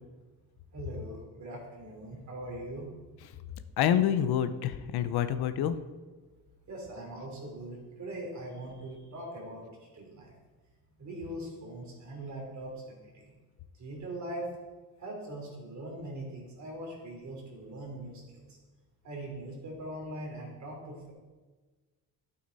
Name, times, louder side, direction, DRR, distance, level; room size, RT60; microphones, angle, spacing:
voice 1, 0.7-2.8 6.7-9.7 9.9-10.3 11.0-13.3 13.8-14.5 15.0-18.5 19.0-21.1, right 1 dB, 45° right, -1 dB, 3.5 m, -41 dB
voice 2, 3.8-5.8, left 10 dB, 80° left, 12 dB, 0.7 m, -27 dB
11.5 x 8.4 x 4.1 m, 1.3 s
cardioid pair, 120°, 38 cm